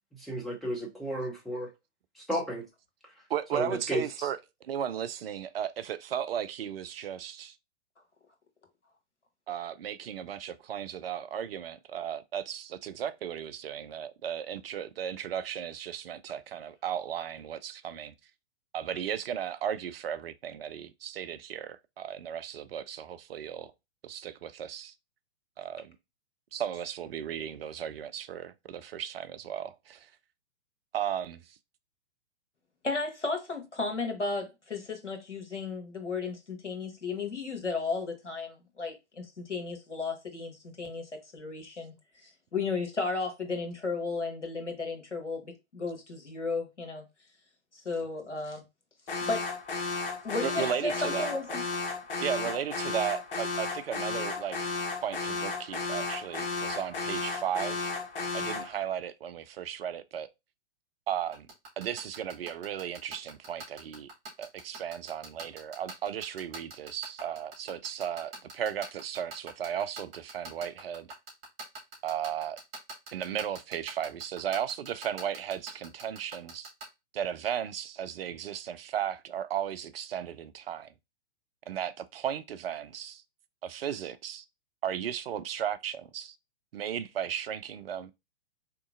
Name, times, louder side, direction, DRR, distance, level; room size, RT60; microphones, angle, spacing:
voice 1, 0.2-1.7 2.2-2.6 3.5-4.3, equal, ahead, 0.6 m, -33 dB
voice 2, 3.3-7.6 9.5-18.1 18.7-23.7 24.0-24.9 25.6-26.0 26.5-30.1 30.9-31.6 50.4-51.3 52.2-54.6 55.0-57.9 58.3-60.3 61.1-61.5 61.8-64.1 64.4-71.1 72.0-72.6 73.1-76.7 77.1-80.9 81.7-83.2 83.6-84.4 84.8-86.3 86.7-88.1, right 9 dB, 55° right, 0.4 m, -35 dB
voice 3, 32.8-41.9 42.2-47.0 47.7-48.6 49.2-49.5 50.2-51.6, left 4 dB, 85° left, 1.2 m, -34 dB
Alarm, 49.1-58.8, left 4 dB, 50° left, 0.9 m, -34 dB
sound 1, 61.3-76.8, right 3 dB, 20° right, 1.9 m, -42 dB
3.7 x 2.9 x 2.4 m
figure-of-eight pair, 115°, 35 cm